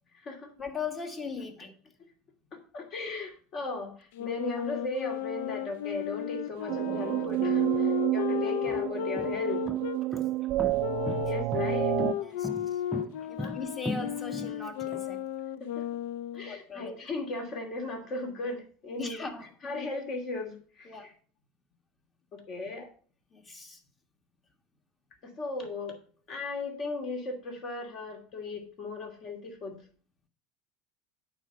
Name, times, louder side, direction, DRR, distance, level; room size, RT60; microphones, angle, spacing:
voice 1, 0.6-1.7 12.1-12.8 13.3-15.2 16.5-17.0 19.0-19.5 20.8-21.1 23.3-23.8, left 5 dB, 25° left, 1.7 m, -39 dB
voice 2, 2.5-9.6 11.2-12.0 13.4-13.5 15.6-15.9 16.3-19.2 19.6-21.1 22.3-22.9 25.2-25.9 26.3-29.8, left 2 dB, 50° left, 2.5 m, -37 dB
Wind instrument woodwind instrument, 4.1-10.0 10.8-16.5, left 11 dB, 75° left, 0.4 m, -34 dB
sound 1, 6.7-12.1, right 17 dB, 55° right, 0.3 m, -29 dB
sound 2, 7.7-7.8 8.5-15.0, left 1 dB, 5° right, 0.6 m, -37 dB
8.9 x 4.3 x 6.6 m
hypercardioid pair, 90°, 0 cm